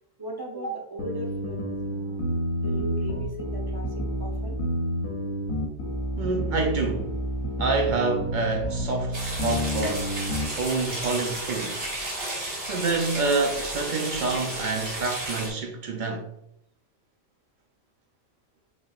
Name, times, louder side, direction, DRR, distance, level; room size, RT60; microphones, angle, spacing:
voice 1, 0.2-2.2 2.6-4.6, right 1 dB, 20° right, 0.8 m, -37 dB
sound 1, 1.0-10.5, equal, 75° left, 1.3 m, -29 dB
voice 2, 6.2-7.2 7.6-10.1 10.6-11.9 12.7-16.3, right 3 dB, 80° right, 0.4 m, -27 dB
sound 2, 9.1-15.5, right 1 dB, 55° right, 1.5 m, -33 dB
4.3 x 4.1 x 2.4 m
omnidirectional pair, 1.4 m